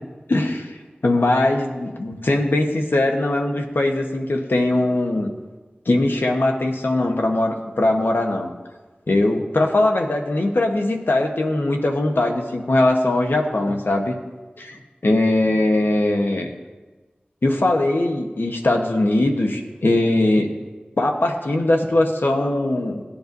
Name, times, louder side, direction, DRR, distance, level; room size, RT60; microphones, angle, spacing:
voice 1, 0.3-0.8 1.0-5.3 5.9-8.5 9.1-14.1 14.6-16.5 17.4-20.5 21.0-23.0, left 2 dB, 85° left, 3 dB, 1.1 m, -20 dB
18.0 x 10.0 x 2.7 m, 1.2 s
wide cardioid pair, 45°, 4 cm